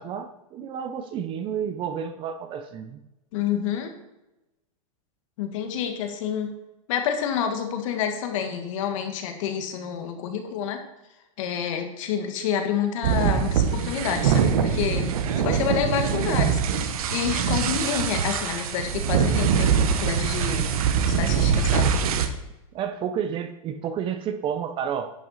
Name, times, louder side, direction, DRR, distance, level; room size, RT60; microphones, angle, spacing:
voice 1, 0.0-3.0 22.7-25.3, right 8 dB, 25° right, 9 dB, 0.6 m, -31 dB
voice 2, 3.3-3.9 5.4-6.6 6.9-10.8 11.4-15.1 15.4-16.6 17.1-20.7 21.1-21.9, left 8 dB, 60° left, 5 dB, 1.6 m, -28 dB
sound 1, 13.0-22.3, right 7 dB, 70° right, 1.0 m, -23 dB
10.5 x 6.1 x 4.1 m, 0.96 s
supercardioid pair, 140°, 19 cm